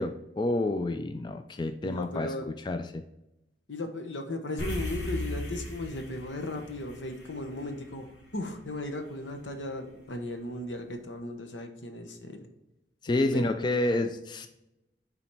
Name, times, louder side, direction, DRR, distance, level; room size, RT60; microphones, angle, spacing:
voice 1, 0.0-3.0 13.0-14.5, left 2 dB, 25° left, 8 dB, 0.3 m, -29 dB
voice 2, 1.8-2.4 3.7-8.1 8.3-12.4 13.1-13.4 13.9-14.1, left 1 dB, 90° left, 6 dB, 1.0 m, -36 dB
sound 1, 4.6-9.1, left 1 dB, 70° left, 1.9 m, -38 dB
7.2 x 4.1 x 4.6 m, 0.89 s
head